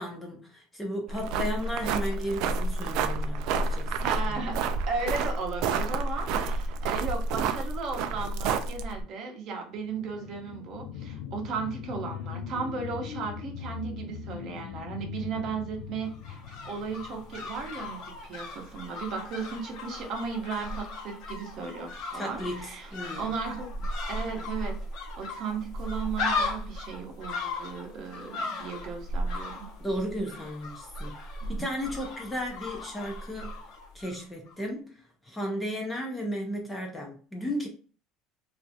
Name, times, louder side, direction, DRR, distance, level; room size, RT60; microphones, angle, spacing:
voice 1, 0.0-3.9 4.3-4.4 22.1-23.3 29.8-31.2 31.5-33.6 33.9-37.7, equal, 10° left, 0.5 m, -34 dB
sound 1, 1.1-9.0, right 4 dB, 60° right, 0.3 m, -29 dB
voice 2, 4.0-4.6 4.9-29.7 31.4-31.5, right 5 dB, 40° right, 0.7 m, -36 dB
sound 2, 9.7-18.8 19.3-19.4, left 8 dB, 75° left, 0.3 m, -41 dB
sound 3, 16.0-34.2 34.5-34.6, left 2 dB, 55° left, 0.8 m, -36 dB
3.2 x 2.4 x 2.7 m
cardioid pair, 165°, 0 cm